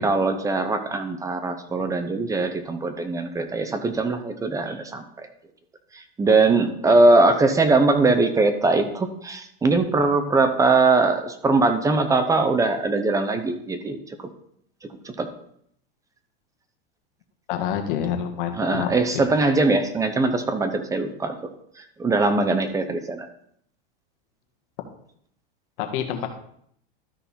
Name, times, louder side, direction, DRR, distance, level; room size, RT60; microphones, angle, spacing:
voice 1, 0.0-5.3 5.9-14.3 15.0-15.3 18.6-21.4 21.8-23.3, right 3 dB, 10° right, 8 dB, 0.7 m, -21 dB
voice 2, 17.5-19.2 25.8-26.4, left 9 dB, 60° left, 4 dB, 1.7 m, -28 dB
13.0 x 5.4 x 4.3 m, 0.68 s
supercardioid pair, 150°, 29 cm